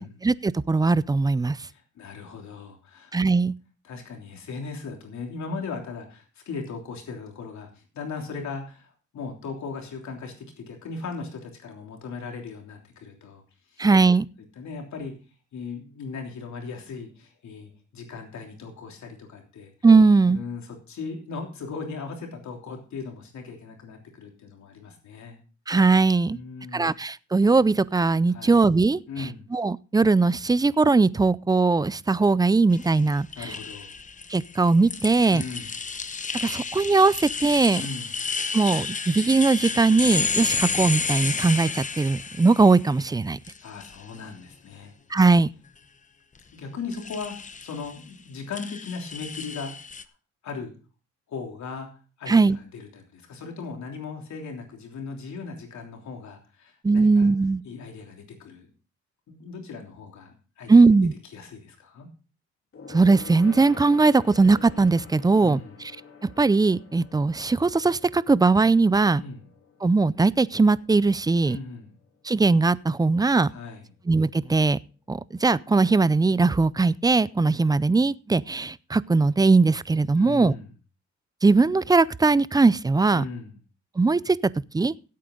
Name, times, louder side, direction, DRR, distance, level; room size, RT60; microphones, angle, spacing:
voice 1, 0.2-1.6 3.1-3.5 13.8-14.2 19.8-20.4 25.7-26.4 26.7-29.0 29.5-33.5 34.3-35.4 36.3-37.8 38.5-43.4 45.1-45.5 52.3-52.6 56.8-57.6 60.7-61.1 62.9-65.9 66.4-69.2 69.8-71.6 72.2-73.5 74.1-74.8 75.1-80.5 81.4-83.2 84.0-84.4 84.7-84.9, right 3 dB, 15° right, 0.4 m, -20 dB
voice 2, 1.7-3.1 3.8-13.4 13.7-13.8 14.6-15.1 15.5-19.7 20.2-25.4 26.3-26.9 28.3-28.5 29.1-29.4 33.3-33.9 35.3-35.7 37.7-38.1 43.6-44.9 46.5-49.7 50.4-50.7 51.3-51.9 52.2-57.3 57.6-58.7 59.3-60.8 61.3-62.1 65.4-65.7 69.2-69.4 71.5-71.9 73.5-73.8 80.2-80.7 83.1-83.5, left 4 dB, 65° left, 3.2 m, -38 dB
sound 1, 32.7-43.0 43.5-44.2 46.9-48.0 48.5-50.0, left 5 dB, 25° left, 0.8 m, -31 dB
Gong, 62.7-72.5 72.8-73.1 73.4-73.5, left 5 dB, 45° left, 3.5 m, -48 dB
16.0 x 8.5 x 3.8 m
cardioid pair, 90°, 30 cm